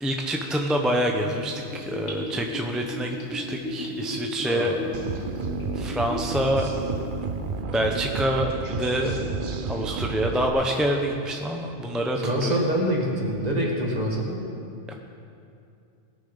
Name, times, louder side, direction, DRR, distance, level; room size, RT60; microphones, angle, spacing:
voice 1, 0.0-4.7 5.7-6.7 7.7-9.2 9.6-12.6 14.9-15.0, equal, ahead, 1 dB, 0.5 m, -26 dB
Gurgling / Bathtub (filling or washing), 1.2-6.3 6.7-6.8, left 1 dB, 60° left, 2.6 m, -34 dB
voice 2, 4.5-4.9 5.1-5.3 12.2-14.4, equal, 30° right, -2 dB, 2.2 m, -26 dB
sound 1, 4.9-10.5, right 4 dB, 50° right, 0.7 m, -31 dB
20.5 x 7.2 x 5.6 m, 2.6 s
omnidirectional pair, 1.4 m